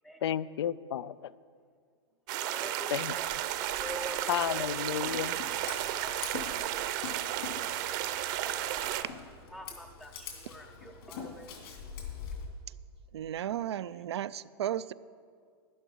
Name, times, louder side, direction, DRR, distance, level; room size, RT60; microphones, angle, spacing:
voice 1, 0.2-1.3 2.9-3.1 4.3-5.4, left 10 dB, 85° left, 18 dB, 0.4 m, -32 dB
sound 1, 2.3-9.0, right 12 dB, 45° right, 0.7 m, -33 dB
voice 2, 2.4-3.3 3.8-4.6 5.9-6.2 6.6-6.7 9.2-11.5, left 1 dB, ahead, 4 dB, 0.4 m, -46 dB
Scissors, 4.3-12.5, left 6 dB, 65° left, 2.8 m, -44 dB
voice 3, 13.1-14.9, right 11 dB, 90° right, 17 dB, 0.4 m, -34 dB
11.5 x 11.0 x 4.6 m, 2.1 s
hypercardioid pair, 140°, 13 cm